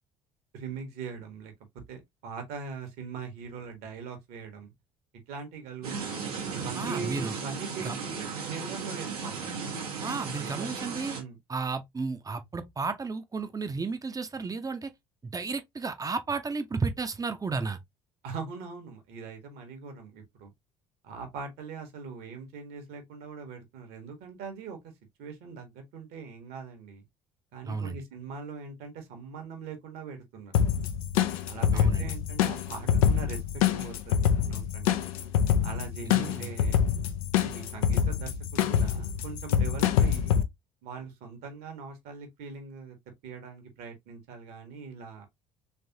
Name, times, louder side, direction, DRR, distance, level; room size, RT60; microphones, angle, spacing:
voice 1, 0.5-1.5 1.9-4.7 5.3-6.2 6.5-9.5 10.4-10.7 11.1-11.4 18.2-20.5 21.0-24.9 25.2-27.0 27.5-30.5 31.5-34.9 35.6-36.8 37.4-40.4 40.8-43.0 43.2-45.3, right 5 dB, 60° right, 1.3 m, -41 dB
sound 1, 5.8-11.2, right 5 dB, 80° right, 1.1 m, -36 dB
voice 2, 6.7-7.4 7.8-8.0 10.0-11.2 11.5-14.9 15.2-17.8 27.6-28.0 31.7-32.1 36.0-36.5, right 4 dB, 20° right, 0.7 m, -33 dB
sound 2, 30.5-40.4, left 8 dB, 70° left, 0.5 m, -26 dB
3.4 x 3.3 x 2.8 m
figure-of-eight pair, 55°, 19 cm